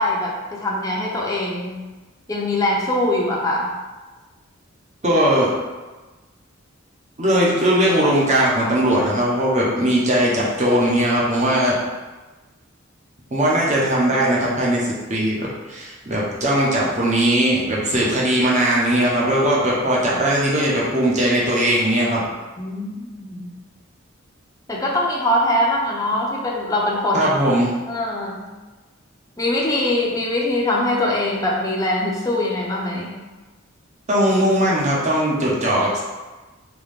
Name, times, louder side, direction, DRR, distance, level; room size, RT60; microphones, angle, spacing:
voice 1, 0.0-1.8 2.3-3.7 22.6-23.5 24.7-27.3 27.9-28.4 29.4-33.1, left 1 dB, 15° left, -3 dB, 0.7 m, -22 dB
voice 2, 5.0-5.5 7.2-11.8 13.3-22.3 27.1-27.7 34.1-36.0, right 1 dB, 35° right, -5 dB, 1.1 m, -19 dB
3.7 x 3.7 x 3.6 m, 1.2 s
head